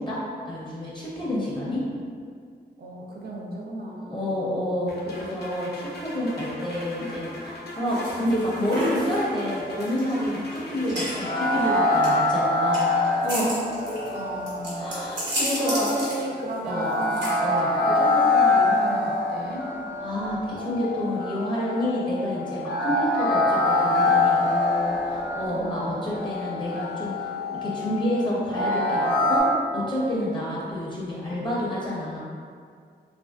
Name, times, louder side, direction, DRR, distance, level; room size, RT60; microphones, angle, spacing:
voice 1, 0.0-1.8 4.1-13.6 13.9-14.0 14.7-15.9 16.6-16.9 17.4-17.7 20.0-32.2, left 1 dB, 25° left, -7 dB, 0.6 m, -29 dB
voice 2, 2.8-4.7 14.1-15.0 15.3-17.3 17.8-19.7 25.5-26.0, right 1 dB, 60° right, -2 dB, 0.4 m, -34 dB
sound 1, 4.9-12.6, left 1 dB, 65° left, 0.4 m, -40 dB
sound 2, 7.9-19.2, equal, 85° right, 1.0 m, -35 dB
sound 3, 11.2-29.4, left 2 dB, 85° left, 0.8 m, -25 dB
3.1 x 2.5 x 2.2 m, 2.1 s
wide cardioid pair, 120°, 18 cm